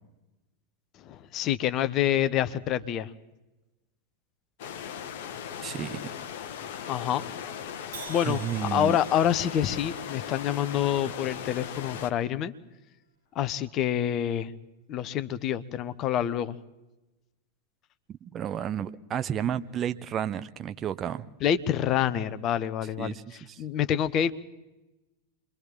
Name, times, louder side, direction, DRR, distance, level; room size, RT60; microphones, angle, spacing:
voice 1, 1.0-3.1 6.9-7.2 8.1-12.5 13.3-14.5 14.9-16.6 21.4-24.3, left 10 dB, 35° left, 13 dB, 1.1 m, -27 dB
sound 1, 4.6-12.1, left 8 dB, 50° left, 1.2 m, -38 dB
voice 2, 5.6-6.0 8.2-9.0 18.3-21.3 23.0-23.2 23.5-23.6, right 9 dB, 25° right, 11 dB, 0.8 m, -31 dB
Crash cymbal, 7.9-12.0, right 5 dB, 50° right, 6.8 m, -48 dB
29.5 x 23.5 x 3.8 m, 1.0 s
figure-of-eight pair, 90°, 0 cm